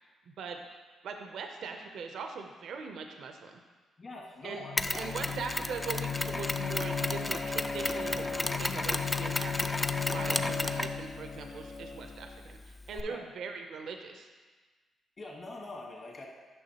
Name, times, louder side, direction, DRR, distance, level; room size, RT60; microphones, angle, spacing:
voice 1, 0.3-0.6 1.0-3.5 4.4-9.8 10.1-12.6 12.9-14.3, right 5 dB, 75° right, 5 dB, 0.6 m, -41 dB
voice 2, 4.0-5.3 12.9-13.2 15.2-16.3, left 2 dB, 45° left, -3 dB, 2.0 m, -44 dB
Bowed string instrument, 4.6-12.4, left 6 dB, 70° left, 0.6 m, -36 dB
Mechanisms, 4.8-13.0, left 2 dB, 20° left, 0.3 m, -35 dB
8.7 x 5.9 x 2.8 m, 1.4 s
supercardioid pair, 65°, 0 cm